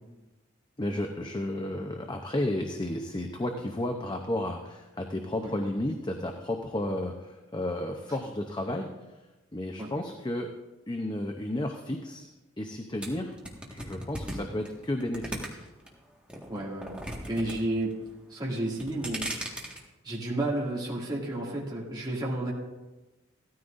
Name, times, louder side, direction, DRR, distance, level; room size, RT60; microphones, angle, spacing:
voice 1, 0.8-8.9 9.5-10.5 10.9-12.3 12.6-13.3 13.7-15.6, left 1 dB, 20° left, 3 dB, 0.7 m, -32 dB
sound 1, 13.0-15.9 16.3-17.6 17.8-18.3 18.7-19.8, right 1 dB, 5° right, 1.7 m, -37 dB
voice 2, 16.5-17.0 17.3-17.9 18.3-19.3 20.0-22.5, right 1 dB, 20° right, -6 dB, 2.4 m, -31 dB
17.0 x 13.5 x 2.6 m, 1.1 s
head